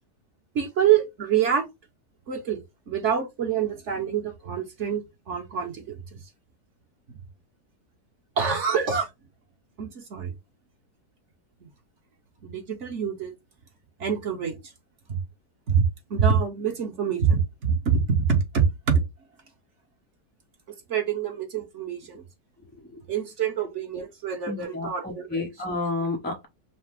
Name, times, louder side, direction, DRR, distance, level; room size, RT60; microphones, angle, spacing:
voice 1, 0.5-1.7 2.3-6.2 7.1-7.2 8.4-9.1 9.8-10.3 12.4-13.3 14.0-14.6 15.1-15.2 15.7-19.0 20.9-22.2 23.1-25.5, right 7 dB, 50° right, 1.2 m, -26 dB
voice 2, 24.5-26.5, left 2 dB, 15° left, 0.3 m, -30 dB
5.7 x 2.0 x 3.5 m
omnidirectional pair, 1.8 m